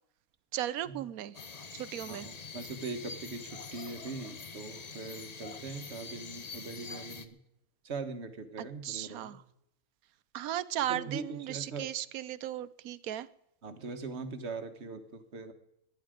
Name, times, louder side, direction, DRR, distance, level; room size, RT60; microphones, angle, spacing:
voice 1, 0.5-1.4 1.7-2.3 8.6-9.4 10.3-13.3, right 12 dB, 75° right, 17 dB, 1.1 m, -36 dB
sound 1, 1.3-7.3, left 4 dB, 35° left, 0.8 m, -45 dB
voice 2, 2.1-7.4 7.8-9.4 10.9-11.9 13.6-15.5, right 4 dB, 50° right, 8 dB, 1.6 m, -41 dB
18.5 x 11.0 x 5.1 m, 0.80 s
omnidirectional pair, 1.5 m